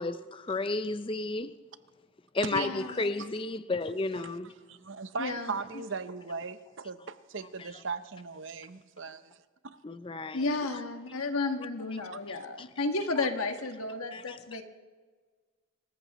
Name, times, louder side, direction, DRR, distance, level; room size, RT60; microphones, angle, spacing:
voice 1, 0.0-1.6 2.3-4.5 7.6-7.7 9.8-10.5 12.6-12.7 14.1-14.4, left 3 dB, 25° left, 0.4 m, -32 dB
voice 2, 2.5-3.1 5.2-5.5 10.3-14.6, left 3 dB, 90° left, 1.4 m, -32 dB
voice 3, 4.7-9.4 9.7-9.8, right 5 dB, 60° right, 0.8 m, -38 dB
26.5 x 14.5 x 3.1 m
head